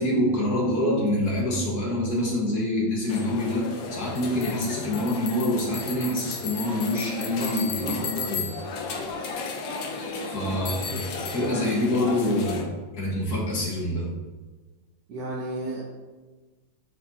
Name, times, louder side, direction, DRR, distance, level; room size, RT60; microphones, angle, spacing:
voice 1, 0.0-8.5 10.3-12.7 13.0-14.1, left 1 dB, 50° left, -4 dB, 1.9 m, -26 dB
sound 1, 3.1-12.6, left 4 dB, 75° left, 1.6 m, -34 dB
voice 2, 7.8-8.3 10.4-11.0 15.1-15.8, right 2 dB, 60° right, -3 dB, 1.4 m, -34 dB
9.8 x 4.5 x 2.8 m, 1.3 s
omnidirectional pair, 2.2 m